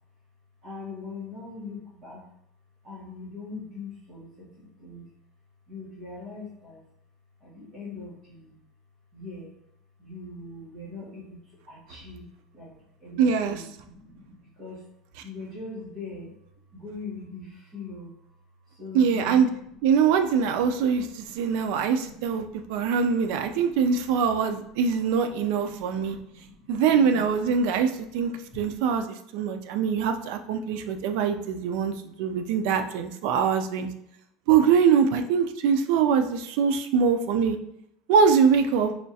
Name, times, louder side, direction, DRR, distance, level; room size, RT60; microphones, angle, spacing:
voice 1, 0.6-2.2 2.8-5.1 5.7-6.8 7.4-8.6 9.1-9.5 10.0-14.9 15.2-16.4 16.7-28.8, left 3 dB, 25° right, -9 dB, 1.0 m, -43 dB
voice 2, 13.2-13.6 18.9-19.5 19.8-26.2 26.7-33.9 34.5-37.6 38.1-38.9, right 6 dB, 60° right, 8 dB, 0.3 m, -23 dB
4.2 x 2.3 x 2.7 m, 0.75 s
cardioid pair, 170°, 0 cm